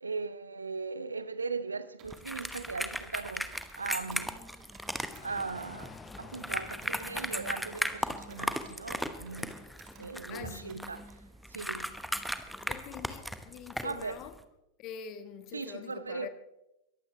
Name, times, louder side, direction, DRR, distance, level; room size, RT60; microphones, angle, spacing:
voice 1, 0.0-4.4 5.2-9.5 10.0-11.1 11.5-11.9 13.8-14.2 15.5-16.3, right 4 dB, 75° right, 0.8 m, -38 dB
sound 1, 2.0-14.4, equal, ahead, 1.1 m, -37 dB
Computer keyboard, 2.0-3.8 4.1-7.1 7.5-10.1 10.5-11.2, right 8 dB, 35° right, 2.6 m, -59 dB
sound 2, 4.9-9.9, left 4 dB, 15° left, 0.7 m, -52 dB
voice 2, 10.3-10.8 12.6-14.3 14.8-16.3, left 8 dB, 40° left, 1.4 m, -44 dB
22.5 x 14.5 x 3.3 m
figure-of-eight pair, 90°, 0 cm